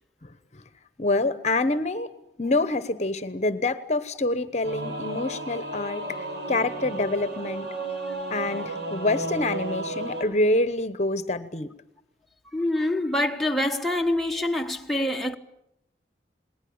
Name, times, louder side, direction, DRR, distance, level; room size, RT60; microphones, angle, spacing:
voice 1, 0.2-0.6 1.0-2.1 2.4-7.7 8.3-11.7, left 2 dB, 40° left, 1.0 m, -26 dB
Singing / Musical instrument, 4.6-10.2, right 2 dB, 75° right, 6.2 m, -33 dB
voice 2, 12.5-15.4, left 1 dB, ahead, 1.2 m, -26 dB
28.5 x 20.0 x 8.7 m
head